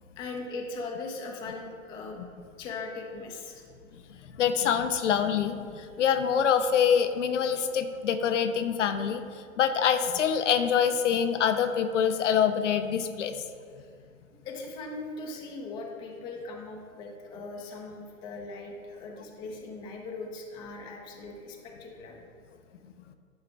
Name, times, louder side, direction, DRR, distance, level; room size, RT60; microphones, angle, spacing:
voice 1, 0.2-2.2 2.6-3.6 13.8-13.9 14.3-22.2, left 3 dB, 10° left, 1 dB, 0.5 m, -39 dB
voice 2, 3.9-9.2 9.6-13.4, left 8 dB, 60° left, 8 dB, 0.7 m, -25 dB
11.0 x 4.8 x 3.4 m, 2.2 s
hypercardioid pair, 120°, 41 cm